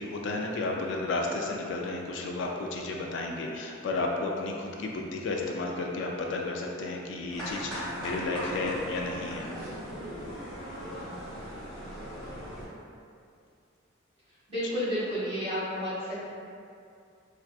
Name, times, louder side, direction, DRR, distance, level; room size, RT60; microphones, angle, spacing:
voice 1, 0.0-9.8 14.6-14.7, left 2 dB, 65° left, 0 dB, 0.3 m, -33 dB
sound 1, 7.3-12.7, equal, 5° left, 1.3 m, -38 dB
voice 2, 14.5-16.1, equal, 30° right, -11 dB, 1.4 m, -31 dB
4.5 x 2.4 x 2.3 m, 2.4 s
head